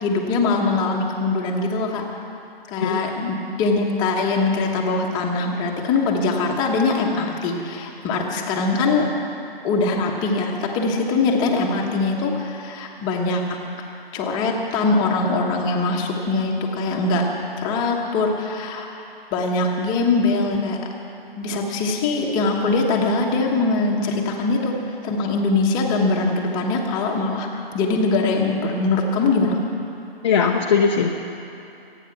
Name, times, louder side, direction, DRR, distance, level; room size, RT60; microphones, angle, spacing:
voice 1, 0.0-2.0 2.7-9.1 9.6-13.4 14.1-17.2 17.6-18.9 19.3-20.8 21.4-24.7 25.0-27.5 27.7-29.6, left 3 dB, 15° left, 0 dB, 1.2 m, -22 dB
voice 2, 30.2-31.1, left 6 dB, 30° left, 0 dB, 0.8 m, -19 dB
24.5 x 9.1 x 6.0 m, 2.8 s
figure-of-eight pair, 150°, 30 cm